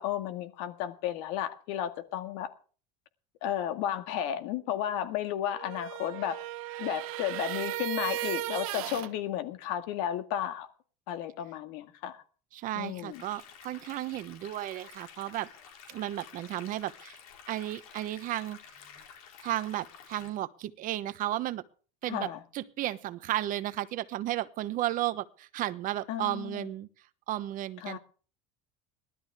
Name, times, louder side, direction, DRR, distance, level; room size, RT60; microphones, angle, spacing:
voice 1, 0.0-2.5 3.4-6.4 6.8-10.7 11.1-12.2 12.8-13.2 22.1-22.4 26.1-26.7 27.8-28.0, left 10 dB, 70° left, 2.0 m, -33 dB
sound 1, 5.5-9.1, right 15 dB, 80° right, 1.2 m, -36 dB
voice 2, 12.5-15.5 15.9-17.2 17.5-18.6 19.4-21.6 22.0-26.9 27.3-28.0, right 14 dB, 50° right, 1.1 m, -34 dB
sound 2, 13.1-20.3, left 7 dB, 85° left, 4.3 m, -51 dB
18.5 x 13.0 x 3.5 m
supercardioid pair, 120°, 18 cm